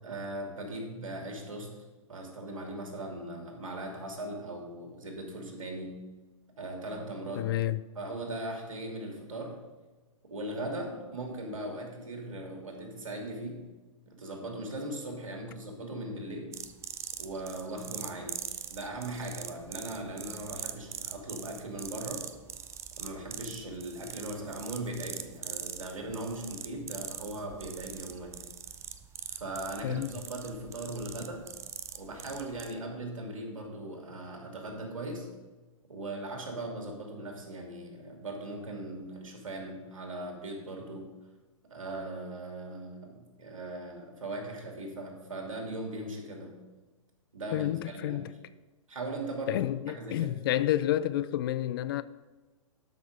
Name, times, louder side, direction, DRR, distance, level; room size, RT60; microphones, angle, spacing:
voice 1, 0.0-6.0 6.6-7.5 7.9-9.6 10.2-13.7 14.1-16.6 17.2-18.4 18.7-22.3 23.0-28.5 29.3-31.5 31.9-35.3 35.9-41.1 41.7-46.6 47.3-48.3 48.9-50.4, right 1 dB, 70° right, 2.8 m, -39 dB
voice 2, 7.4-7.8 29.8-30.1 47.5-48.2 49.5-52.0, left 13 dB, 45° left, 0.5 m, -29 dB
sound 1, 16.5-32.7, right 8 dB, 15° right, 0.5 m, -42 dB
12.5 x 6.1 x 5.1 m
figure-of-eight pair, 110°, 17 cm